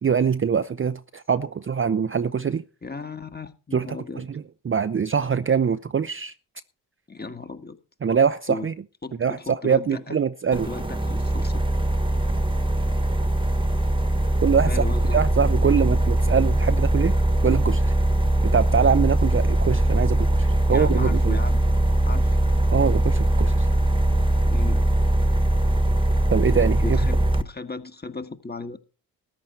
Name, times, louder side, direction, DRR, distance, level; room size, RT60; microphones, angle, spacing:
voice 1, 0.0-2.6 3.7-6.3 8.0-8.7 9.2-10.7 14.4-14.8 15.1-17.1 17.4-17.9 18.4-21.4 22.7-23.7 26.3-27.0, right 7 dB, 25° right, 0.6 m, -23 dB
voice 2, 2.8-4.2 7.1-7.8 8.5-8.7 9.0-10.2 10.5-11.6 14.6-15.2 20.7-21.6 22.1-22.4 24.4-24.9 26.8-28.8, left 3 dB, 20° left, 1.6 m, -36 dB
sound 1, 10.5-27.4, right 1 dB, 10° right, 1.4 m, -21 dB
14.0 x 10.0 x 4.4 m
hypercardioid pair, 45°, 48 cm